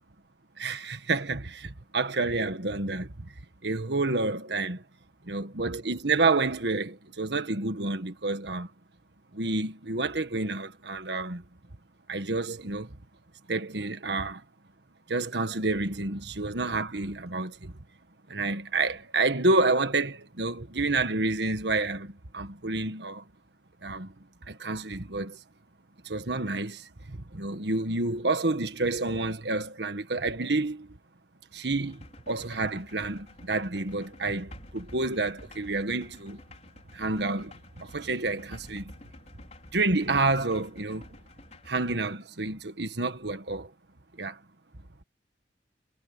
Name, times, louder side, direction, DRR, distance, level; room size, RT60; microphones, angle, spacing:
voice 1, 0.6-3.3 3.6-4.8 5.2-8.7 9.3-11.4 12.1-13.0 13.5-14.4 15.1-17.8 18.3-23.2 23.8-24.1 24.5-25.4 26.0-31.0 31.5-36.4 36.9-38.9 39.7-41.1 41.7-43.7 44.2-44.4, right 3 dB, 75° right, 1.6 m, -29 dB
sound 1, 31.8-42.0, left 1 dB, 40° left, 5.3 m, -50 dB
head